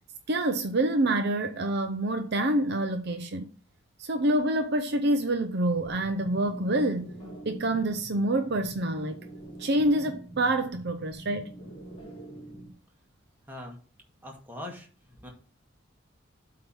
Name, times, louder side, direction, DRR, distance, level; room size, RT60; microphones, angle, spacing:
voice 1, 0.3-3.5 4.0-7.1 7.4-9.2 9.6-11.5, right 1 dB, 55° right, 0.6 m, -27 dB
sound 1, 5.6-12.7, right 1 dB, 30° left, 3.4 m, -44 dB
voice 2, 13.5-13.8 14.2-15.3, left 1 dB, 10° right, 2.0 m, -42 dB
7.9 x 3.7 x 6.2 m
head